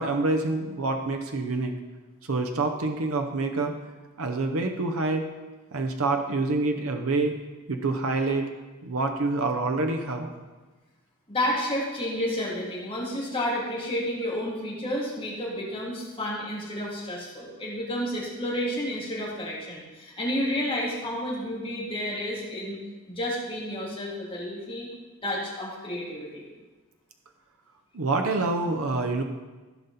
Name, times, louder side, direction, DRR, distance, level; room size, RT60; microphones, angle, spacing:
voice 1, 0.0-1.7 2.2-3.7 4.2-5.3 5.7-7.4 7.7-8.5 8.8-10.3 27.9-29.2, right 3 dB, 65° right, 4 dB, 0.8 m, -27 dB
voice 2, 11.3-22.8 23.1-24.9 25.2-26.5, equal, 25° left, -6 dB, 3.0 m, -31 dB
15.5 x 5.3 x 4.2 m, 1.2 s
head